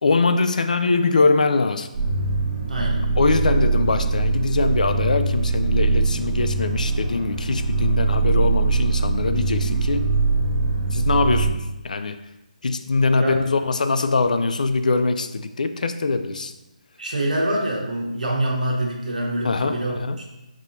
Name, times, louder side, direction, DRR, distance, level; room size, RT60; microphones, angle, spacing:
voice 1, 0.0-1.9 3.2-10.1 10.9-12.2 12.6-16.5 19.4-20.2, left 3 dB, 70° left, 9 dB, 0.4 m, -22 dB
sound 1, 1.9-11.5, right 3 dB, 20° right, 1.1 m, -22 dB
voice 2, 2.7-3.0 13.2-13.5 17.0-20.2, right 1 dB, 70° right, -2 dB, 1.2 m, -25 dB
6.0 x 3.0 x 2.7 m, 0.96 s
hypercardioid pair, 165°, 4 cm